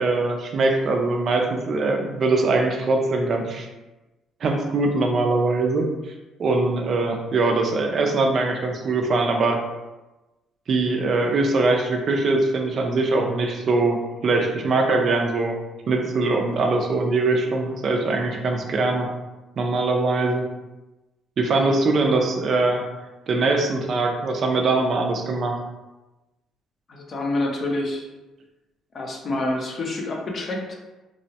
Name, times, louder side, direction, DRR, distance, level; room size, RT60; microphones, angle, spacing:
voice 1, 0.0-3.7 4.4-5.8 6.4-9.6 10.7-15.6 15.9-19.1 19.6-20.4 21.4-22.8 23.3-25.6, right 3 dB, 50° right, 3 dB, 0.4 m, -22 dB
voice 2, 26.9-28.1 28.9-30.7, left 2 dB, 45° left, 1 dB, 0.5 m, -27 dB
2.9 x 2.0 x 2.8 m, 1.1 s
cardioid pair, 110°, 0 cm